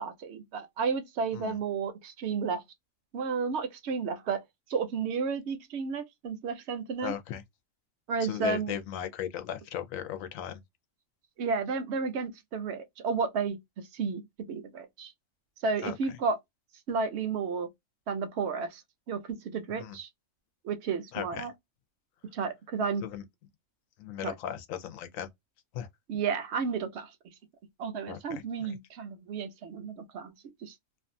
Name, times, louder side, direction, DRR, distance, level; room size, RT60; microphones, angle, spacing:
voice 1, 0.0-2.6 3.1-4.4 4.7-7.1 8.1-8.7 11.4-13.6 13.9-14.2 14.5-15.1 15.6-16.4 16.9-17.7 18.1-18.8 19.1-20.1 20.6-21.5 22.3-23.0 24.2-24.3 26.1-27.1 27.8-30.3 30.6-30.7, right 5 dB, 65° right, 0.7 m, -32 dB
voice 2, 7.0-7.4 8.2-10.6 15.8-16.0 19.7-20.0 21.1-21.5 23.0-23.2 24.0-25.3 25.7-25.9 28.1-28.8, left 10 dB, 85° left, 1.0 m, -37 dB
2.4 x 2.3 x 2.5 m
omnidirectional pair, 1.4 m